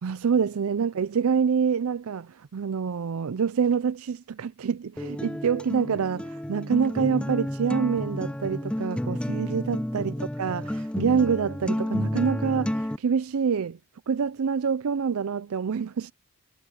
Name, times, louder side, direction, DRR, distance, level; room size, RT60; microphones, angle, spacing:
voice 1, 0.0-13.8 14.1-16.1, right 6 dB, 80° right, 0.4 m, -26 dB
Acoustic guitar, 5.0-13.0, left 1 dB, 5° left, 0.3 m, -31 dB
head